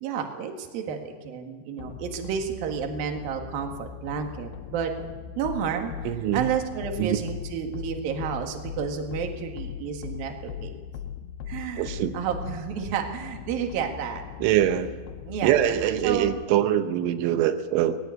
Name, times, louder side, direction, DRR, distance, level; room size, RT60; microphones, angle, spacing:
voice 1, 0.0-4.9 5.4-5.9 6.3-10.7 11.5-14.2 15.3-15.5 16.0-16.4, right 7 dB, 60° right, 3 dB, 3.2 m, -31 dB
sound 1, 1.8-16.4, left 8 dB, 75° left, 2.5 m, -39 dB
voice 2, 6.1-6.5 7.0-7.2 11.8-12.2 14.4-15.0 15.4-18.0, right 11 dB, 85° right, 9 dB, 3.4 m, -23 dB
19.5 x 16.0 x 9.5 m, 1.5 s
omnidirectional pair, 5.4 m